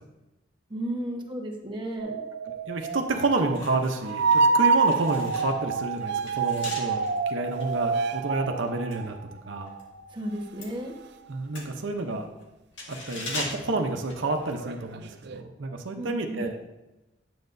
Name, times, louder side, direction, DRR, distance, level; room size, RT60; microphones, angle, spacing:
voice 1, 0.7-2.2 10.1-10.9 16.0-16.5, right 1 dB, 25° right, 0 dB, 1.2 m, -33 dB
sound 1, 2.0-10.1 11.0-11.1 13.6-13.9 14.2-15.4, right 4 dB, 60° right, 0.5 m, -27 dB
sound 2, 2.7-2.9 3.3-9.9 10.2-14.8 15.1-15.3, left 2 dB, 80° left, 1.7 m, -41 dB
voice 2, 2.7-9.2 9.5-9.7 11.3-12.3 12.9-16.6, right 2 dB, 90° right, 4 dB, 0.8 m, -29 dB
9.5 x 7.7 x 2.7 m, 1.0 s
head